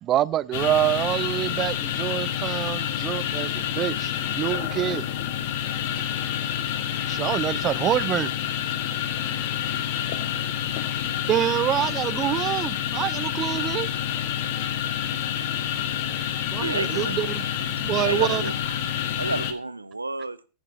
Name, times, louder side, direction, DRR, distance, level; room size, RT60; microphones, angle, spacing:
voice 1, 0.0-5.1 7.1-8.3 10.0-10.2 11.3-13.9 16.5-18.4, right 12 dB, 30° right, 0.4 m, -26 dB
sound 1, 0.5-19.5, left 10 dB, 50° left, 1.2 m, -28 dB
voice 2, 5.6-6.1 9.9-11.3, left 4 dB, 75° left, 1.4 m, -53 dB
voice 3, 16.6-17.2 17.9-18.5 19.2-20.5, right 2 dB, 80° right, 0.6 m, -30 dB
9.8 x 9.4 x 4.1 m
figure-of-eight pair, 90°, 0 cm